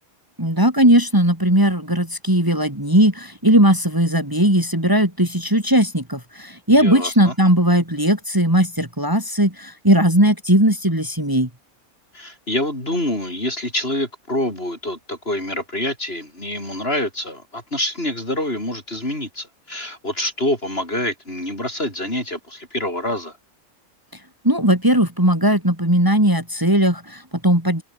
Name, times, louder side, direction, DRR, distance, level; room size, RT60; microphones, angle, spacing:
voice 1, 0.4-11.5 24.4-27.8, right 1 dB, 15° right, 4.2 m, -18 dB
voice 2, 6.7-7.3 12.1-23.3, left 1 dB, 40° left, 7.8 m, -26 dB
open air
omnidirectional pair, 1.5 m